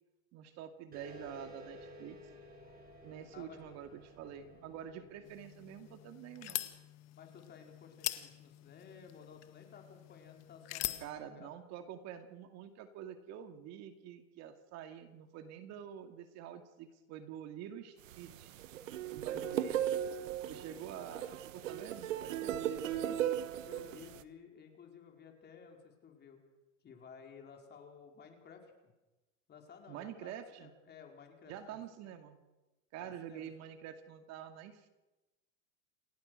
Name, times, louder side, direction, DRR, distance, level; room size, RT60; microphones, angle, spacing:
voice 1, 0.3-2.2 3.0-6.7 11.0-18.5 19.1-19.8 20.5-23.2 29.9-30.7 31.5-32.4 32.9-34.9, right 9 dB, 45° right, 7 dB, 2.3 m, -47 dB
sound 1, 0.9-6.0, equal, 25° right, 7.0 m, -54 dB
voice 2, 3.3-3.7 4.2-5.3 7.2-11.5 19.3-19.8 22.8-23.2 23.6-26.4 26.8-28.9 29.5-32.1 33.0-33.5, left 6 dB, 25° left, 3 dB, 4.8 m, -55 dB
sound 2, 5.2-11.1, left 16 dB, 40° left, 1.9 m, -43 dB
sound 3, 18.1-24.2, right 10 dB, 80° right, 1.5 m, -37 dB
28.5 x 17.0 x 6.6 m, 1.1 s
supercardioid pair, 130°, 38 cm